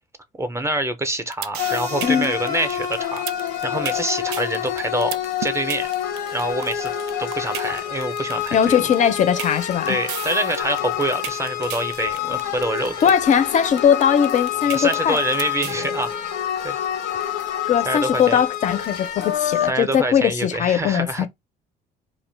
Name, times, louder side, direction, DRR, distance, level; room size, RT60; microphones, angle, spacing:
voice 1, 0.4-5.9 6.3-6.9 7.2-8.9 9.9-12.9 14.7-16.1 16.6-16.8 17.8-18.4 19.7-21.3, right 2 dB, 15° right, 0.4 m, -26 dB
sound 1, 1.1-15.8, right 10 dB, 85° right, 0.4 m, -33 dB
sound 2, 1.6-19.7, left 10 dB, 90° left, 0.7 m, -27 dB
voice 2, 2.0-2.3 8.5-10.0 13.0-15.2 17.7-21.3, left 8 dB, 50° left, 0.4 m, -19 dB
2.4 x 2.1 x 3.2 m
cardioid pair, 110°, 17 cm